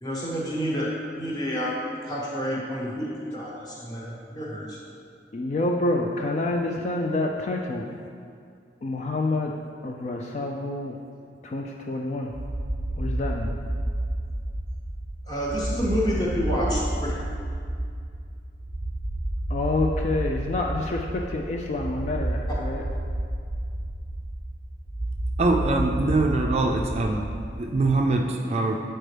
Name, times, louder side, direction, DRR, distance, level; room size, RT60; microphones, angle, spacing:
voice 1, 0.0-4.8 15.3-17.1, equal, 25° left, -5 dB, 1.0 m, -29 dB
voice 2, 5.3-8.0 8.8-9.5 9.8-11.0 11.4-12.3 13.0-13.6 19.5-22.8, left 2 dB, 40° left, 1 dB, 0.3 m, -28 dB
sound 1, 12.3-27.9, right 1 dB, 90° left, 1.4 m, -30 dB
voice 3, 25.4-27.3 27.6-28.8, right 2 dB, 35° right, 2 dB, 0.4 m, -23 dB
7.6 x 4.4 x 3.3 m, 2.3 s
head